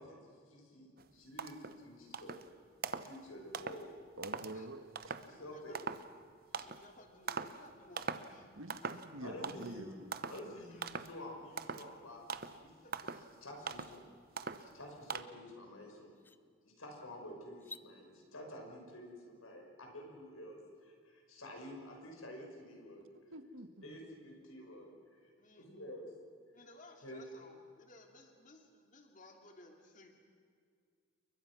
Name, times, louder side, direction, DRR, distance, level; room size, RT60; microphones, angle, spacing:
voice 1, 0.0-2.4 2.9-4.0 5.2-5.8 8.3-8.4 9.2-10.0 10.3-12.2 12.6-12.9 13.4-14.1 14.6-16.2 16.8-23.1 23.8-24.9 25.6-26.1 27.0-27.2, left 1 dB, 85° left, 2 dB, 5.9 m, -50 dB
sound 1, 1.0-1.1 1.4-1.8 2.1-2.5 2.8-3.2 3.5-3.8 4.2-4.5 5.0-5.3 5.7-6.1 6.5-6.9 7.3-7.6 8.0-8.3 8.7-9.1 9.4-9.8 10.1-10.4 10.8-11.1 11.6-11.9 12.3-12.6 12.9-13.3 13.7-14.0 14.4-14.7 15.1-15.2, right 5 dB, 45° right, 0.9 m, -41 dB
voice 2, 4.2-5.1 8.5-10.1 23.3-23.9, right 1 dB, 75° right, 9 dB, 1.6 m, -47 dB
voice 3, 5.3-5.9 6.6-8.5 8.8-9.0 10.7-10.8 12.8-13.1 25.3-25.7 26.5-30.2, left 2 dB, 35° left, 3 dB, 2.6 m, -58 dB
sound 2, 12.9-13.0 13.4-13.9 15.5-15.6 16.1-16.4 17.5-17.9, left 4 dB, 10° left, 0.5 m, -52 dB
29.0 x 23.0 x 6.2 m, 2.2 s
head